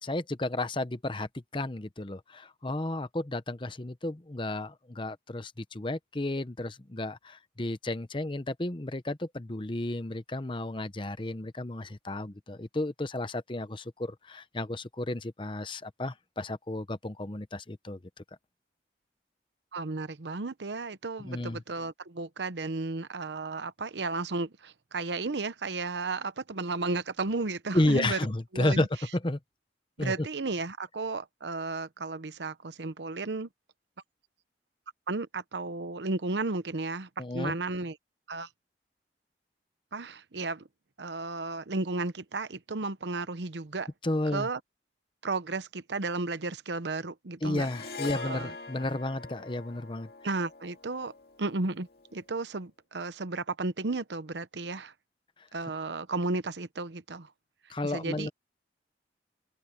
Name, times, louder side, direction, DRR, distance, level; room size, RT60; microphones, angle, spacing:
voice 1, 0.0-18.0 21.2-21.6 27.7-28.9 29.1-29.4 30.0-30.3 37.2-37.5 44.0-44.5 47.4-50.1 57.7-58.3, left 2 dB, 30° left, 0.8 m, -32 dB
voice 2, 19.7-28.2 28.5-28.9 30.0-33.5 35.1-38.0 38.3-38.5 39.9-40.6 41.0-43.9 44.3-44.6 45.2-47.7 48.0-48.5 50.2-51.1 51.4-54.9 55.5-57.3 57.8-58.3, right 3 dB, 85° right, 0.9 m, -33 dB
Harp, 47.5-52.0, left 4 dB, 60° left, 2.3 m, -43 dB
open air
head